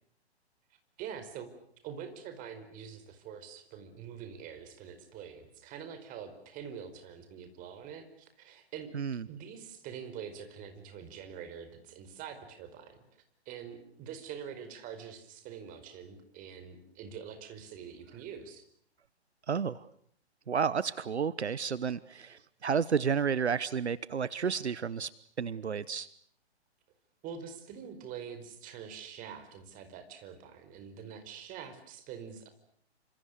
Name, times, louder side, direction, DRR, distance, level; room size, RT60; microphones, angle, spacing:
voice 1, 1.0-1.5 1.8-8.9 9.3-13.0 13.4-18.6 27.2-32.5, right 7 dB, 25° right, 9 dB, 4.9 m, -45 dB
voice 2, 8.9-9.2 19.5-19.8 20.5-25.1 25.4-26.1, right 6 dB, 80° right, 19 dB, 1.1 m, -31 dB
29.5 x 27.0 x 6.7 m, 0.65 s
figure-of-eight pair, 130°, 33 cm